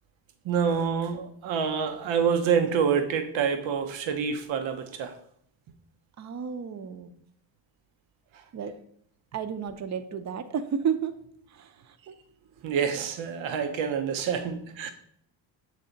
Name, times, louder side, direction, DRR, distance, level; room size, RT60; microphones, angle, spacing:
voice 1, 0.4-5.2 12.6-14.9, right 7 dB, 80° right, 0.8 m, -27 dB
voice 2, 6.2-7.1 8.5-8.7 9.3-11.2 11.5-12.1 12.6-12.8, right 7 dB, 40° right, 0.6 m, -32 dB
8.5 x 3.3 x 3.9 m
cardioid pair, 110°, 45 cm